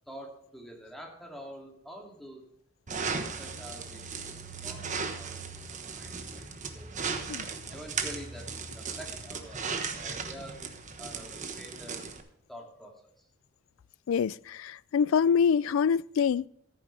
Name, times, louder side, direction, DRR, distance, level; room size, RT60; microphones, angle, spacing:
voice 1, 0.1-2.5 3.0-4.3 4.6-6.5 6.7-6.9 7.7-9.6 10.0-10.7 11.0-12.1 12.5-13.2, equal, ahead, 2.4 m, -47 dB
sound 1, 2.9-12.2, right 5 dB, 40° right, 1.2 m, -37 dB
voice 2, 14.1-16.5, left 6 dB, 75° left, 0.3 m, -25 dB
14.5 x 9.3 x 3.3 m
head